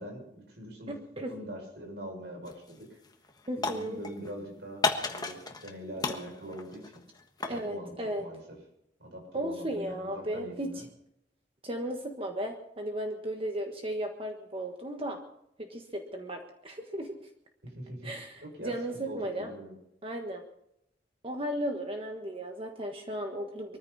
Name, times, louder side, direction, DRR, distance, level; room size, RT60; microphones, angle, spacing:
voice 1, 0.0-0.9 1.3-3.0 3.5-6.9 7.4-8.4 9.0-10.8 17.6-18.1 18.4-19.7, equal, 70° right, 2 dB, 6.6 m, -43 dB
voice 2, 0.9-1.3 3.5-4.0 7.5-8.3 9.3-10.8 11.6-15.2 15.6-17.2 18.0-19.5 20.0-20.4 21.2-23.8, right 1 dB, 30° right, 3 dB, 1.4 m, -35 dB
sound 1, 2.5-2.8 3.0-4.3 4.8-5.7 6.0-7.7, left 3 dB, 25° left, 1.4 m, -33 dB
23.0 x 14.5 x 4.2 m, 0.77 s
head